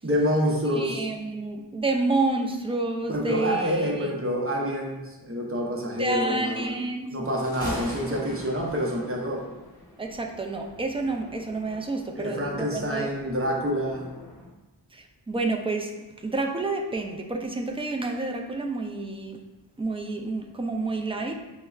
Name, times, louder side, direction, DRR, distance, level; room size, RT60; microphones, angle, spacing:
voice 1, 0.0-1.1 3.1-6.7 7.1-9.4 12.2-14.1, equal, 30° right, -2 dB, 0.7 m, -27 dB
voice 2, 0.7-4.1 6.0-7.1 10.0-13.1 14.9-15.9 16.2-19.4 19.8-21.4, right 2 dB, 15° right, 2 dB, 0.3 m, -29 dB
Thunder, 7.2-14.5, left 1 dB, 10° left, 1.2 m, -43 dB
5.4 x 2.1 x 2.3 m, 1.1 s
wide cardioid pair, 60°, 43 cm